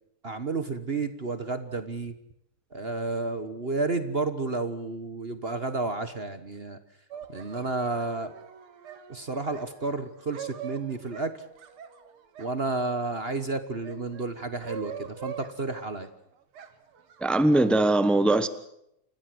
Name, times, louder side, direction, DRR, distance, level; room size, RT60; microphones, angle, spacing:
voice 1, 0.2-2.1 2.7-6.8 7.3-8.3 9.1-11.4 12.4-16.1, right 3 dB, 35° right, 10 dB, 1.2 m, -31 dB
sound 1, 7.1-13.1 13.6-16.1 16.5-17.8, right 8 dB, 85° right, 2.5 m, -43 dB
voice 2, 17.2-18.5, right 2 dB, ahead, 13 dB, 0.3 m, -21 dB
28.5 x 15.0 x 7.8 m, 0.78 s
omnidirectional pair, 2.4 m